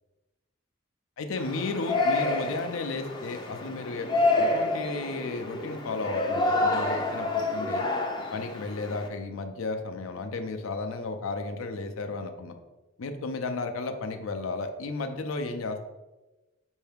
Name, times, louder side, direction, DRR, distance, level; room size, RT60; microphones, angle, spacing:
voice 1, 1.2-7.9 8.3-12.6 13.0-15.9, left 3 dB, 90° left, 6 dB, 0.5 m, -34 dB
Yell, 1.4-9.1, left 2 dB, 20° left, 0.4 m, -28 dB
5.5 x 2.7 x 3.4 m, 1.1 s
head